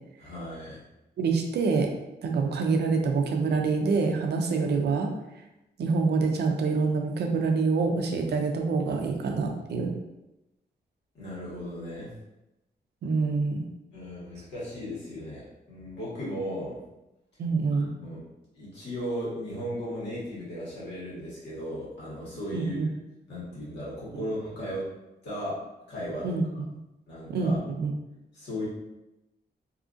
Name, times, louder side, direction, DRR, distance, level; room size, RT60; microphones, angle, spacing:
voice 1, 0.2-0.8 11.1-12.1 13.9-16.8 17.7-18.2 18.5-22.8 23.3-24.8 25.2-25.6 25.9-26.4 27.1-27.6 28.3-28.6, equal, 75° left, -8 dB, 1.4 m, -36 dB
voice 2, 1.2-1.9 2.2-5.1 5.8-9.9 13.0-13.7 17.4-17.9 22.5-22.9 24.1-24.2 26.2-26.4 27.3-27.9, right 4 dB, 70° right, 3 dB, 0.4 m, -26 dB
2.7 x 2.4 x 2.5 m, 0.93 s
wide cardioid pair, 180°, 18 cm